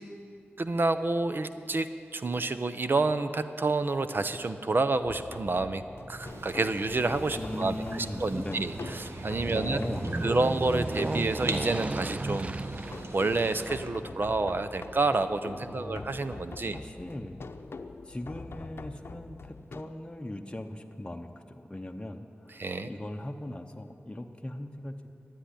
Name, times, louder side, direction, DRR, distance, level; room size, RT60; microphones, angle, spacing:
voice 1, 0.6-5.8 6.1-8.7 9.0-9.8 10.2-12.5 13.1-16.8 22.6-22.9, right 3 dB, 50° right, 10 dB, 0.7 m, -29 dB
Aircraft, 4.3-16.8 17.2-17.3, right 2 dB, 30° right, 0.3 m, -38 dB
sound 1, 5.0-19.8, left 4 dB, 70° left, 0.7 m, -44 dB
sound 2, 6.2-13.8, right 2 dB, 75° right, 1.4 m, -43 dB
voice 2, 7.3-8.7 9.5-10.4 15.7-16.1 16.6-17.4 18.0-25.1, left 1 dB, 20° left, 3 dB, 0.8 m, -39 dB
13.0 x 9.1 x 10.0 m, 2.6 s
cardioid pair, 55°, 4 cm